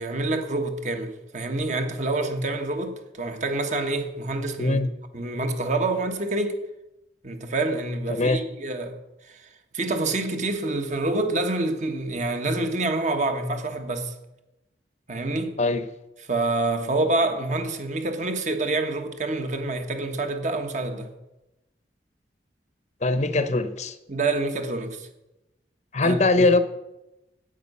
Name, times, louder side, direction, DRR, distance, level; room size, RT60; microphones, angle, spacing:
voice 1, 0.0-4.8 5.1-6.6 7.2-9.0 9.3-9.5 9.7-14.1 15.1-15.6 16.3-21.1 24.1-25.1 26.0-26.2, right 2 dB, 40° right, 1.3 m, -27 dB
voice 2, 8.1-8.4 15.6-15.8 23.0-24.0 25.9-26.6, left 2 dB, 40° left, 0.8 m, -21 dB
13.0 x 9.1 x 5.5 m
head